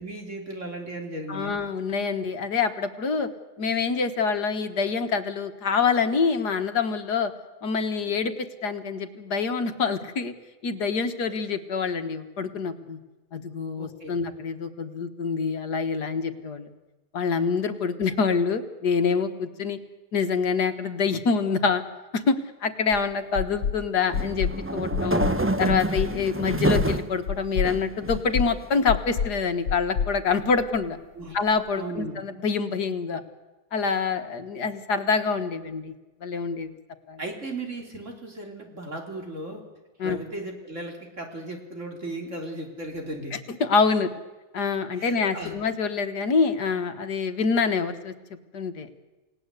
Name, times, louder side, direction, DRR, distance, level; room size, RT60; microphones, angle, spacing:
voice 1, 0.0-1.5 13.8-14.1 31.2-31.4 31.8-32.2 37.2-39.6 40.0-43.4 45.0-45.6, right 2 dB, 45° right, 2 dB, 3.6 m, -36 dB
voice 2, 1.3-3.3 3.6-7.3 7.6-10.3 10.6-13.0 13.3-16.7 17.1-19.8 20.1-21.8 22.1-25.2 25.6-31.0 31.3-33.2 33.7-35.9 36.2-36.7 37.1-37.2 40.0-40.2 43.6-44.1 44.5-48.1 48.5-48.9, left 5 dB, 70° left, 8 dB, 2.0 m, -26 dB
sound 1, 22.9-23.0 23.4-23.8 24.1-24.6 24.9-25.4 25.7-26.1 26.5-26.9 27.3-27.7 28.1-28.5 28.9-29.3 29.7-30.9, left 7 dB, 90° left, 1.6 m, -28 dB
sound 2, 24.1-27.1 27.6-28.5, right 1 dB, 15° right, 0.5 m, -27 dB
29.0 x 18.0 x 8.2 m, 1.2 s
omnidirectional pair, 1.8 m